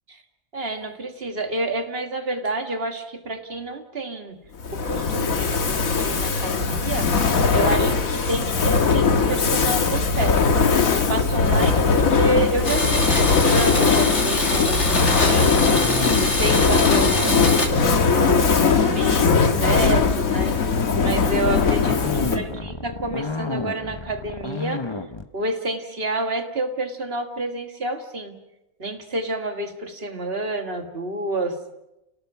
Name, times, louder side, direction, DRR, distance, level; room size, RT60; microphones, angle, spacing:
voice 1, 0.5-4.4 4.7-17.5 18.1-20.6 21.0-24.9 25.3-28.4 28.8-31.6, right 2 dB, 45° right, 6 dB, 1.9 m, -29 dB
Fire, 4.6-22.6, left 5 dB, 80° left, 1.8 m, -20 dB
Domestic sounds home sounds, 12.6-17.7, left 2 dB, 55° left, 2.9 m, -23 dB
sound 1, 15.5-25.2, left 3 dB, 20° left, 1.0 m, -31 dB
30.0 x 18.0 x 5.9 m, 0.91 s
omnidirectional pair, 1.4 m